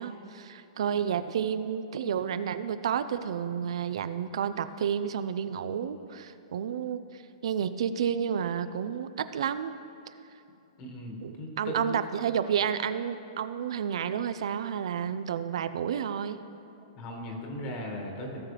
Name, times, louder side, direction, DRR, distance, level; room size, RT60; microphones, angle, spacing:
voice 1, 0.0-9.8 11.2-16.4, right 8 dB, 65° right, 12 dB, 0.4 m, -31 dB
voice 2, 10.8-12.0 16.9-18.4, left 1 dB, 30° left, 1 dB, 1.7 m, -38 dB
17.0 x 6.2 x 3.3 m, 2.8 s
hypercardioid pair, 160°, 3 cm